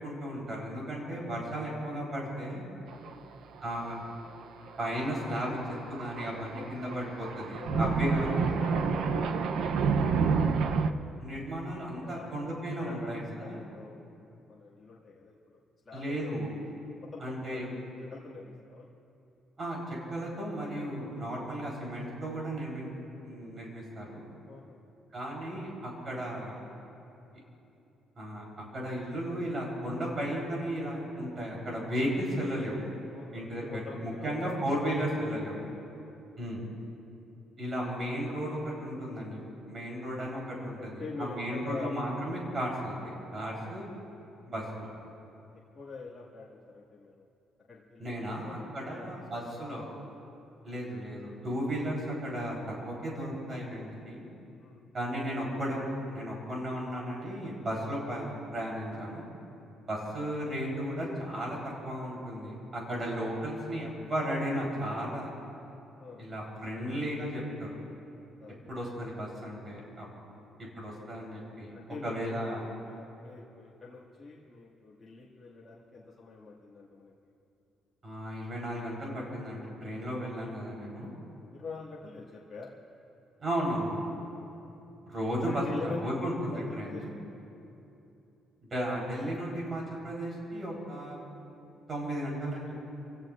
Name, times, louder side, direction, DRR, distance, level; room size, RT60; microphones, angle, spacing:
voice 1, 0.0-2.6 3.6-4.0 4.8-5.6 5.9-8.3 11.2-13.6 15.9-16.5 17.2-17.8 19.6-22.9 23.2-24.3 25.1-26.6 28.2-28.4 28.7-32.8 33.3-35.6 36.4-36.6 37.6-43.9 44.5-44.9 48.0-49.9 50.6-54.3 54.9-59.3 59.8-61.6 61.8-65.3 66.2-67.7 68.7-70.1 70.6-72.6 78.0-81.1 83.4-84.0 85.1-87.1 88.6-91.2 91.9-92.7, equal, 25° right, -3 dB, 4.0 m, -35 dB
Thunder, 2.9-3.3 3.6-3.7 4.7-10.9, right 5 dB, 65° right, 0.7 m, -29 dB
voice 2, 6.6-7.9 8.2-10.3 10.7-11.3 12.0-15.4 15.8-16.5 17.0-18.9 24.5-24.8 28.2-28.5 33.1-35.5 35.9-36.2 40.0-40.1 40.8-41.9 43.3-43.7 45.7-47.2 47.7-49.8 50.1-50.2 54.6-54.9 59.8-60.0 66.0-66.2 68.4-68.6 70.3-70.5 71.7-77.3 78.1-78.3 79.0-79.2 81.5-82.7 84.4-84.6 85.4-86.0 86.4-87.0, left 4 dB, 20° left, -8 dB, 2.1 m, -45 dB
30.0 x 17.0 x 2.6 m, 2.8 s
cardioid pair, 160°, 0 cm